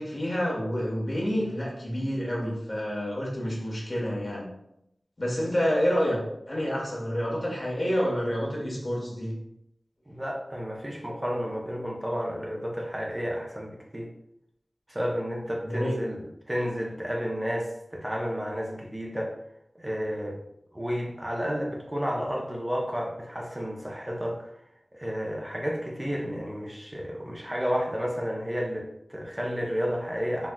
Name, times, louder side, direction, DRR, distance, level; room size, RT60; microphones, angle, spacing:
voice 1, 0.0-4.5 5.2-9.3 15.6-15.9, equal, 45° left, -3 dB, 1.1 m, -28 dB
voice 2, 10.1-14.1 14.9-16.2 16.5-19.3 19.7-20.4 20.7-24.5 24.9-30.5, equal, 20° right, -1 dB, 0.6 m, -31 dB
4.0 x 2.3 x 2.2 m, 0.79 s
wide cardioid pair, 40°, 0 cm